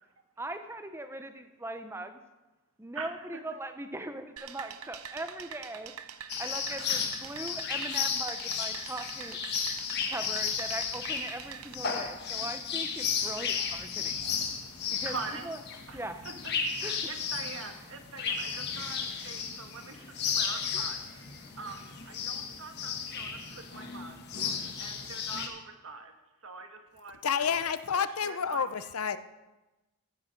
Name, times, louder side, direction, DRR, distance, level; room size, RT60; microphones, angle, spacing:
voice 1, 0.4-2.2 2.8-5.9 6.3-9.4 10.1-14.2 14.9-15.6 15.9-16.2 16.8-17.1 18.5-18.7 20.7-20.8 21.5-21.6, right 1 dB, 10° right, 8 dB, 0.7 m, -40 dB
sound 1, 4.4-11.7, right 8 dB, 85° right, 0.8 m, -45 dB
sound 2, 6.3-25.5, left 6 dB, 45° left, 1.4 m, -34 dB
voice 2, 14.9-15.5 15.9-16.3 16.8-24.2 24.5-26.1 26.4-28.7, right 4 dB, 65° right, 6 dB, 1.4 m, -44 dB
voice 3, 27.2-29.2, left 7 dB, 80° left, 13 dB, 0.6 m, -29 dB
15.0 x 8.6 x 5.2 m, 1.1 s
head